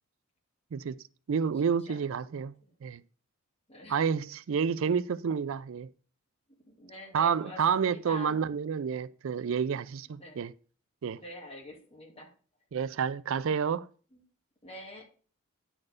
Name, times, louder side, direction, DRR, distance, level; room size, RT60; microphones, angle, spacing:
voice 1, 1.3-2.5 2.8-3.0 3.9-5.9 7.1-10.5 11.0-11.2 12.7-13.9, right 6 dB, 65° right, 0.4 m, -29 dB
voice 2, 1.8-2.3 2.6-2.7 3.7-4.0 6.5-8.4 10.2-10.4 11.1-12.3 14.1-14.2 14.6-15.1, left 1 dB, 30° left, 2.4 m, -47 dB
9.7 x 4.4 x 6.4 m
head